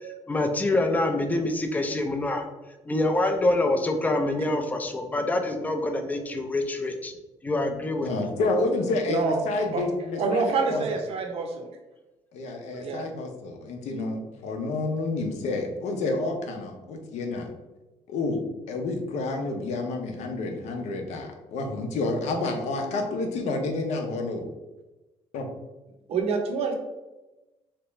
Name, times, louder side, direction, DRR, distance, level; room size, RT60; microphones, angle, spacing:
voice 1, 0.3-2.5 2.9-7.1 7.4-8.1, left 2 dB, 15° left, 5 dB, 0.4 m, -26 dB
voice 2, 8.0-10.8 12.3-17.5 18.1-24.5 25.3-25.5, left 2 dB, 80° left, 4 dB, 0.7 m, -29 dB
voice 3, 9.1-9.4 9.7-9.8 10.1-11.7 12.8-13.0 26.1-26.7, right 5 dB, 60° right, 4 dB, 0.6 m, -27 dB
3.3 x 2.9 x 3.1 m, 1.1 s
cardioid pair, 150°, 11 cm